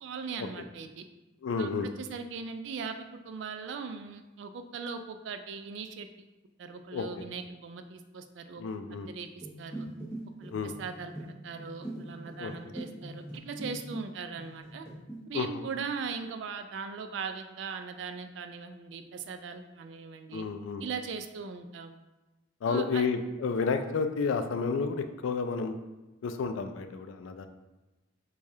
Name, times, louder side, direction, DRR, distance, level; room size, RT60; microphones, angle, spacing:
voice 1, 0.0-1.1 1.6-1.7 2.0-6.1 6.6-8.6 8.9-9.9 10.4-14.9 15.3-20.4 20.8-22.0 22.7-23.0, right 5 dB, 65° right, 8 dB, 0.3 m, -39 dB
voice 2, 1.4-1.9 6.9-7.2 8.6-9.1 10.5-10.8 12.4-12.5 15.3-15.6 20.3-20.8 22.6-25.7 26.2-27.5, left 5 dB, 85° left, 8 dB, 0.3 m, -31 dB
sound 1, 9.4-14.1 14.4-15.2, right 1 dB, 10° left, 0.8 m, -42 dB
4.7 x 2.3 x 2.7 m, 1.1 s
head